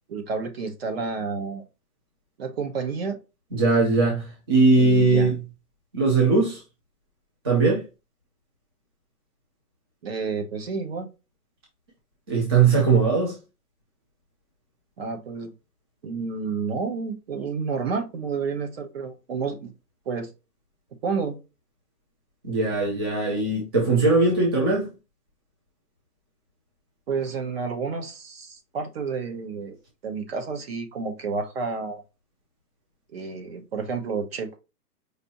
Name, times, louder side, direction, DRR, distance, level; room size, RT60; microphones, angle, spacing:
voice 1, 0.1-1.6 2.4-3.2 4.8-5.3 10.0-11.1 15.0-15.5 16.0-19.7 20.1-20.3 21.0-21.4 27.1-29.8 30.0-32.0 33.1-34.6, right 5 dB, 40° right, 0.9 m, -30 dB
voice 2, 3.5-5.4 5.9-6.6 7.4-7.8 12.3-13.4 22.4-24.9, right 3 dB, 15° right, 0.5 m, -20 dB
5.1 x 2.7 x 2.9 m
hypercardioid pair, 155°, 47 cm